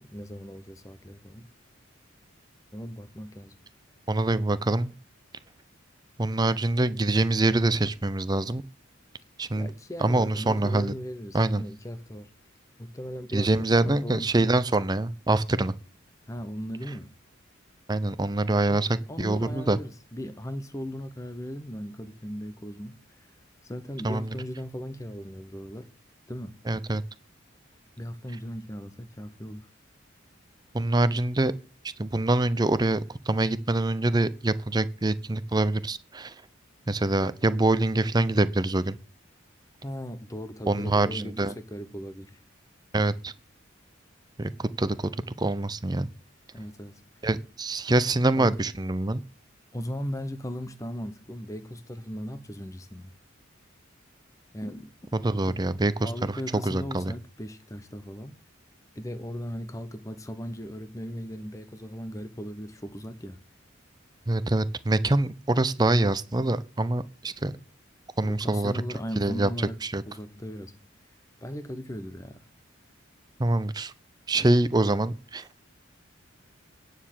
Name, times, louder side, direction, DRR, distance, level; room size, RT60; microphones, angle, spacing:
voice 1, 0.0-1.5 2.7-3.5 9.5-12.3 12.8-14.3 16.3-17.1 18.7-23.3 23.6-25.9 26.3-26.6 28.0-29.7 39.8-42.4 46.5-47.0 48.3-48.5 49.7-53.1 54.5-54.9 55.4-55.6 56.0-58.3 59.0-63.4 68.2-69.8 70.1-70.8 71.4-72.4, equal, 15° left, 0.8 m, -37 dB
voice 2, 4.1-4.9 6.2-8.6 9.4-9.7 10.0-10.9 11.3-11.6 13.3-15.7 17.9-19.8 24.0-24.3 26.7-27.0 30.7-31.5 32.0-36.3 36.9-39.0 40.7-41.5 42.9-43.3 44.4-45.1 45.4-46.1 47.2-49.2 55.1-56.4 56.6-57.1 64.3-67.6 68.2-68.7 69.2-69.5 69.8-70.0 73.4-73.9 74.3-75.7, right 2 dB, 20° right, 0.6 m, -25 dB
9.7 x 6.5 x 7.4 m
head